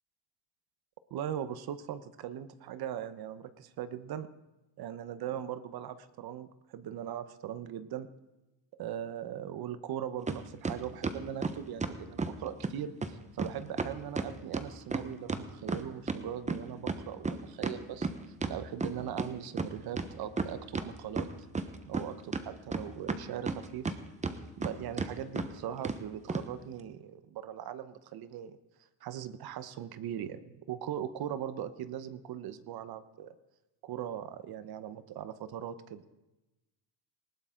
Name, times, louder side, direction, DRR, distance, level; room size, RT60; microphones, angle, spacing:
voice 1, 1.1-4.3 4.8-8.1 8.7-21.3 21.8-24.0 24.6-28.6 29.0-33.3 33.8-36.0, right 10 dB, 55° right, 12 dB, 1.0 m, -40 dB
sound 1, 10.3-10.4 10.6-12.4 12.6-12.7 13.0-13.1 13.4-13.5 13.8-16.2 16.5-19.3 19.6-19.7 20.0-20.9 21.2-22.0 22.3-24.0 24.2-24.7 25.0-25.1 25.4-25.5 25.8-26.0 26.3-26.4, right 4 dB, 15° right, 1.0 m, -33 dB
19.5 x 17.0 x 3.8 m, 1.0 s
cardioid pair, 125°, 45 cm